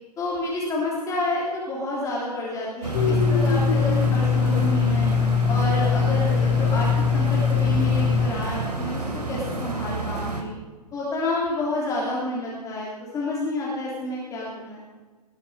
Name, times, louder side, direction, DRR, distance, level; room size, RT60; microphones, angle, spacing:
voice 1, 0.2-5.1 5.5-10.5 10.9-14.8, left 2 dB, 15° left, -5 dB, 3.5 m, -29 dB
sound 1, 2.8-10.4, right 2 dB, 80° right, 2.9 m, -30 dB
Domestic sounds home sounds, 2.9-8.3, left 6 dB, 50° left, 1.9 m, -21 dB
20.0 x 10.5 x 4.8 m, 1.3 s
figure-of-eight pair, 115°, 20 cm